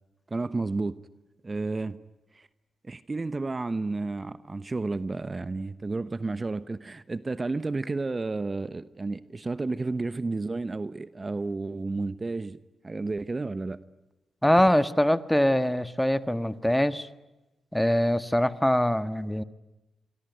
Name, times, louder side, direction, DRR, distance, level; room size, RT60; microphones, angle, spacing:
voice 1, 0.3-1.0 1.4-2.0 2.3-2.5 2.8-12.6 12.8-13.8, right 3 dB, 35° right, 14 dB, 1.1 m, -31 dB
voice 2, 14.4-17.1 17.7-19.4, equal, 5° left, 13 dB, 1.6 m, -23 dB
26.0 x 23.0 x 9.4 m, 1.0 s
supercardioid pair, 50°, 0 cm